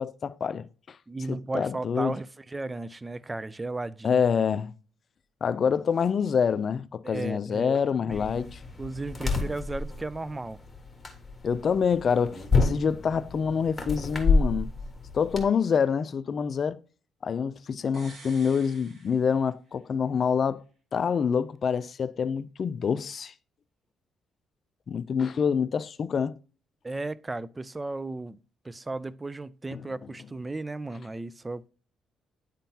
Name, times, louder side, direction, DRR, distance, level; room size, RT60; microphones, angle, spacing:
voice 1, 0.0-1.0 1.3-2.1 4.0-4.7 5.4-8.6 11.4-14.7 15.1-16.8 17.2-20.6 20.9-23.3 24.9-26.4 29.7-29.8, left 6 dB, 50° left, 0.4 m, -26 dB
voice 2, 1.1-4.2 7.0-7.8 8.0-8.5 8.8-10.6 26.8-28.4 28.6-31.7, right 2 dB, 20° right, 0.3 m, -35 dB
sound 1, 8.1-15.4, left 3 dB, 15° left, 1.5 m, -29 dB
sound 2, 17.9-19.9 20.2-20.3, right 3 dB, 50° right, 1.7 m, -50 dB
10.0 x 3.7 x 2.8 m
cardioid pair, 90°, 0 cm